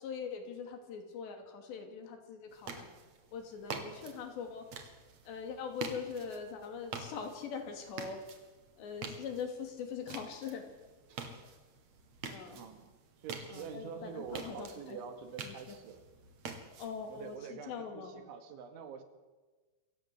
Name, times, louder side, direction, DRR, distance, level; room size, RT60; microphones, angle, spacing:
voice 1, 0.0-2.9 3.3-4.7 5.3-8.2 8.8-10.6 12.3-12.6 13.5-15.0 15.4-15.8 16.8-18.1, left 6 dB, 70° left, 5 dB, 4.9 m, -42 dB
sound 1, 2.5-17.4, right 4 dB, 45° right, 2.9 m, -47 dB
voice 2, 12.5-16.0 17.1-19.0, right 6 dB, 90° right, 8 dB, 4.5 m, -46 dB
27.5 x 16.0 x 7.9 m, 1.3 s
omnidirectional pair, 5.2 m